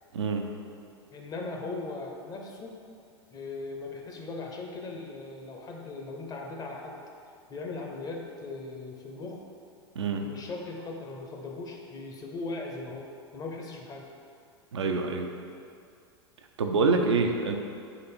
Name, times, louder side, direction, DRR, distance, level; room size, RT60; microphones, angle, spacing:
voice 1, 0.1-0.5 10.0-10.2 14.7-15.3 16.6-17.6, right 4 dB, 85° right, 3 dB, 0.4 m, -26 dB
voice 2, 1.1-2.8 3.3-7.0 7.5-9.4 10.2-13.1 13.3-14.1, left 3 dB, 25° left, 1 dB, 0.6 m, -38 dB
4.0 x 2.5 x 4.3 m, 2.4 s
hypercardioid pair, 95°, 14 cm